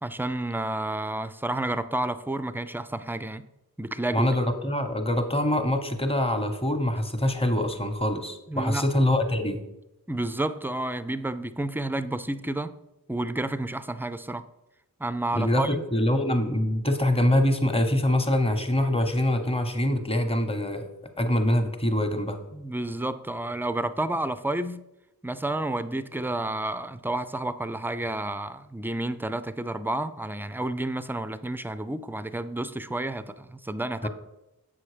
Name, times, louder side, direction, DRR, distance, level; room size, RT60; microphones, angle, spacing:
voice 1, 0.0-3.4 3.8-4.3 8.5-8.9 10.1-12.7 13.1-14.4 15.0-15.8 22.5-24.8 25.2-34.1, right 1 dB, 5° right, 0.4 m, -30 dB
voice 2, 4.1-9.6 15.3-20.9 21.2-22.4 34.0-34.1, left 1 dB, 15° left, 1.0 m, -24 dB
7.7 x 5.8 x 4.9 m
wide cardioid pair, 65°, 36 cm